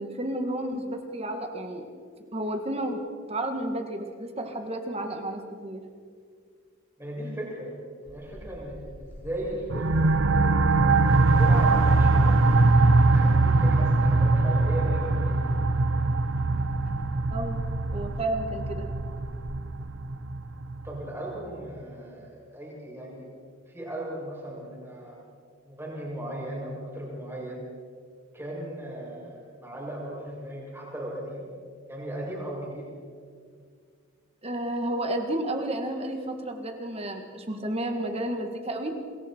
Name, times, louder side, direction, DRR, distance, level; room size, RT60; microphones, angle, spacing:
voice 1, 0.0-1.9 2.3-3.0 3.3-5.8 17.3-17.6 17.9-18.9 34.4-39.0, right 1 dB, 30° right, 5 dB, 1.9 m, -31 dB
voice 2, 7.0-7.7 8.0-9.9 11.1-12.6 12.8-15.4 20.8-23.3 23.7-25.2 25.6-27.6 28.3-31.5 31.9-32.9, right 1 dB, 10° right, -5 dB, 7.3 m, -37 dB
Bird, 8.1-19.4, equal, 50° left, 5.1 m, -43 dB
sound 1, 9.7-21.0, right 3 dB, 75° right, 0.9 m, -22 dB
27.5 x 22.0 x 4.6 m, 2.1 s
head